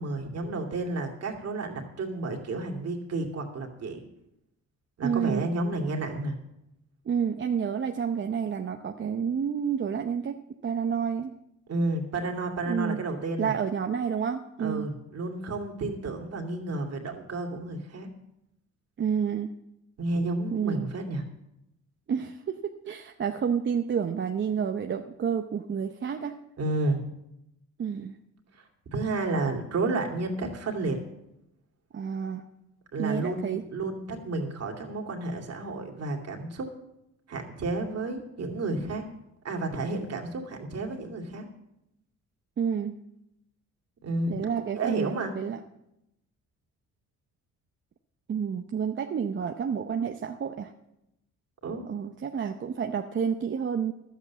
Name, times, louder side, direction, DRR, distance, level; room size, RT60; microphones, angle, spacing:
voice 1, 0.0-4.0 5.0-6.4 11.7-13.5 14.6-18.1 20.0-21.2 26.6-27.1 28.6-28.7 28.9-31.0 32.9-36.7 37.3-39.1 39.4-41.5 44.0-45.3 51.6-51.8, right 2 dB, 55° right, 2 dB, 2.5 m, -31 dB
voice 2, 5.0-5.5 7.1-10.4 10.6-11.3 12.7-13.0 13.4-14.9 19.0-19.5 20.5-20.9 22.1-22.6 22.9-26.4 27.8-28.2 31.9-32.4 33.0-33.6 42.6-42.9 44.3-45.6 48.3-50.7 51.9-53.9, right 7 dB, 40° right, 5 dB, 0.7 m, -29 dB
12.0 x 8.2 x 7.2 m, 0.84 s
cardioid pair, 90°, 30 cm